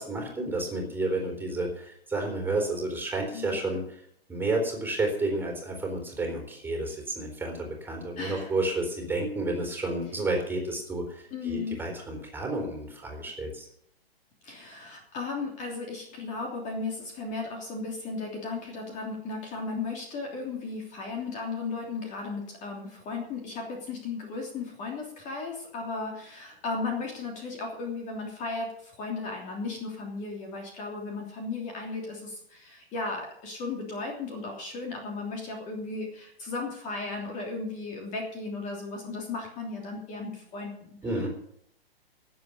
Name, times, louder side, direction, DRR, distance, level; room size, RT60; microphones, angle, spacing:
voice 1, 0.0-3.8 4.3-13.7 41.0-41.3, right 2 dB, 5° right, 1 dB, 3.8 m, -31 dB
voice 2, 3.3-3.8 8.2-8.5 11.3-11.8 14.4-41.3, left 3 dB, 25° left, 1 dB, 3.1 m, -35 dB
18.5 x 7.8 x 7.0 m, 0.69 s
figure-of-eight pair, 115°, 31 cm